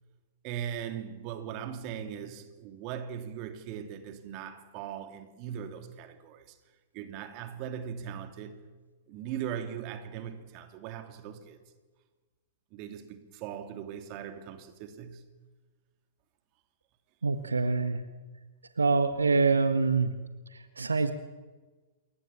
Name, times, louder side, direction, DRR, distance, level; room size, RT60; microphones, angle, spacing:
voice 1, 0.4-6.6 6.9-8.6 9.1-11.6 12.7-15.3, right 9 dB, 40° right, 3.2 m, -39 dB
voice 2, 17.2-18.0 18.8-20.1 20.5-21.1, right 4 dB, 75° right, 1.4 m, -25 dB
28.5 x 22.5 x 7.3 m
figure-of-eight pair, 100°, 0 cm